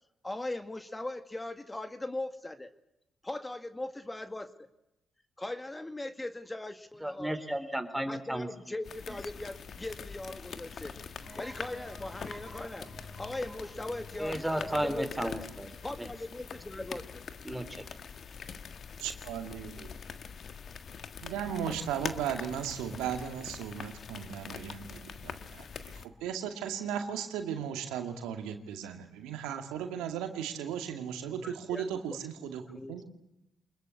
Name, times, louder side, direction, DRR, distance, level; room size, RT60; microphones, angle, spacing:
voice 1, 0.2-2.7 3.2-4.5 5.4-7.4 8.1-11.0 11.4-12.9 13.2-15.5 15.8-17.2 31.4-31.8 32.7-33.0, left 2 dB, 20° left, 9 dB, 2.1 m, -39 dB
voice 2, 7.0-8.5 14.2-15.7 16.0-16.1 17.4-17.8, right 1 dB, 5° right, 8 dB, 3.6 m, -33 dB
sound 1, 8.8-26.1, left 6 dB, 60° left, 1.6 m, -44 dB
sound 2, 11.2-16.7, equal, 25° right, 7.7 m, -52 dB
voice 3, 19.0-19.9 21.2-33.0, right 8 dB, 80° right, 6 dB, 2.3 m, -36 dB
25.5 x 21.5 x 8.6 m, 0.85 s
hypercardioid pair, 50°, 0 cm